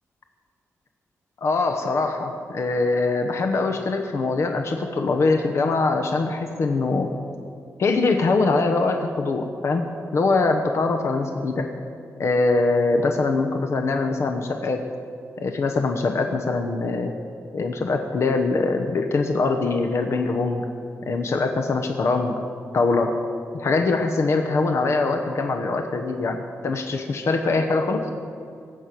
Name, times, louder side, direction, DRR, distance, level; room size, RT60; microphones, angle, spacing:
voice 1, 1.4-7.1 7.8-9.8 10.1-11.7 12.2-14.8 15.4-17.1 17.5-20.6 21.1-22.4 22.7-23.1 23.5-26.4 26.6-28.1, left 3 dB, 55° left, 4 dB, 1.0 m, -23 dB
21.0 x 8.5 x 6.1 m, 2.4 s
wide cardioid pair, 150°, 6 cm